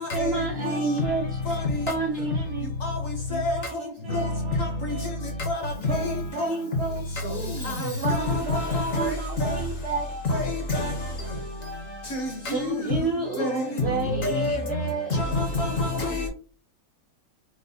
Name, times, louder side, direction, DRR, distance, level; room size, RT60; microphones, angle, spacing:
voice 1, 0.1-1.2 1.9-2.3 5.9-7.0 7.6-10.1 12.4-15.1, right 3 dB, 85° right, 0.5 m, -30 dB
voice 2, 2.3-2.7 3.3-5.4, right 4 dB, 70° right, 0.9 m, -40 dB
voice 3, 8.1-9.1 9.4-9.6 10.3-10.4 10.7-10.9 12.1-12.8 13.4-13.5 14.2-14.6 15.1-16.3, left 2 dB, 60° left, 0.9 m, -26 dB
5.0 x 2.0 x 2.7 m
omnidirectional pair, 2.1 m